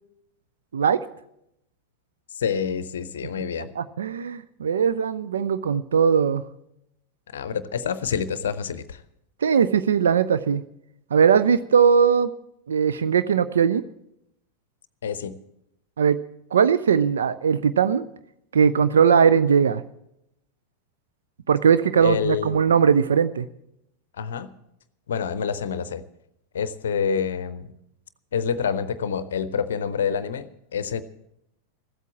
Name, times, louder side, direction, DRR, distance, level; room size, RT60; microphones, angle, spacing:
voice 1, 2.3-3.7 7.3-9.0 15.0-15.3 22.0-22.6 24.2-24.5 25.1-26.0 26.5-27.7 28.3-31.0, left 7 dB, 65° left, 15 dB, 0.6 m, -27 dB
voice 2, 3.8-6.4 9.4-10.6 11.1-12.3 12.7-13.8 16.0-16.2 16.5-18.0 18.5-19.8 21.5-23.5, right 7 dB, 65° right, 13 dB, 0.4 m, -19 dB
15.0 x 8.2 x 8.5 m, 0.81 s
figure-of-eight pair, 90°, 0 cm